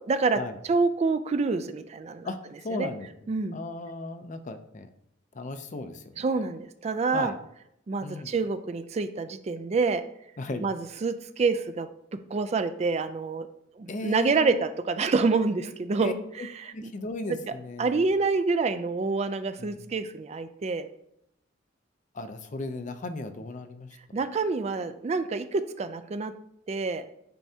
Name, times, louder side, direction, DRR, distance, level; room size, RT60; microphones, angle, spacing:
voice 1, 0.1-2.3 2.7-2.9 3.3-3.6 6.2-7.3 7.9-10.0 10.6-11.9 12.3-13.5 13.8-16.1 16.6-16.7 17.3-17.5 17.8-20.9 24.1-26.3 26.7-27.0, right 4 dB, 35° right, 10 dB, 0.3 m, -27 dB
voice 2, 2.6-4.9 5.3-6.2 7.1-7.3 8.0-8.3 10.4-10.7 13.9-14.6 16.0-16.1 16.7-18.0 19.6-19.8 22.1-23.9, left 2 dB, 40° left, 8 dB, 0.5 m, -36 dB
9.1 x 4.6 x 2.8 m, 0.79 s
head